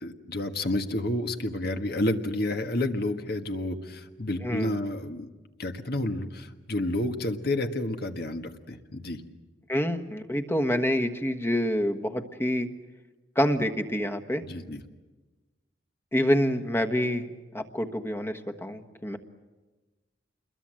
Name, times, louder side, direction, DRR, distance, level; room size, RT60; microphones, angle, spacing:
voice 1, 0.0-5.3 5.6-9.2 14.4-14.8, left 1 dB, 55° left, 6 dB, 1.6 m, -30 dB
voice 2, 4.4-4.7 9.7-12.7 13.3-14.4 16.1-19.2, equal, 15° left, 6 dB, 1.4 m, -27 dB
29.0 x 22.0 x 7.7 m, 1.2 s
head